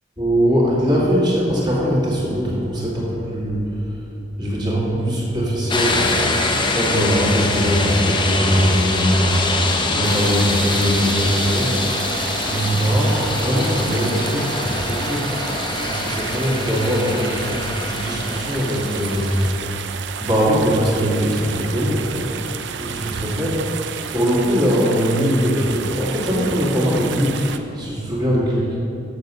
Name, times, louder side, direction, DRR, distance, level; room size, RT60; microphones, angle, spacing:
voice 1, 0.2-4.0 4.4-6.1 6.7-9.6 9.9-11.8 12.4-15.4 15.8-19.4 19.9-22.4 22.8-28.8, equal, 25° right, -5 dB, 2.0 m, -21 dB
sound 1, 5.7-19.5, left 2 dB, 25° left, 0.7 m, -24 dB
sound 2, 10.0-27.6, right 8 dB, 70° right, 0.5 m, -31 dB
7.6 x 6.9 x 5.4 m, 2.7 s
head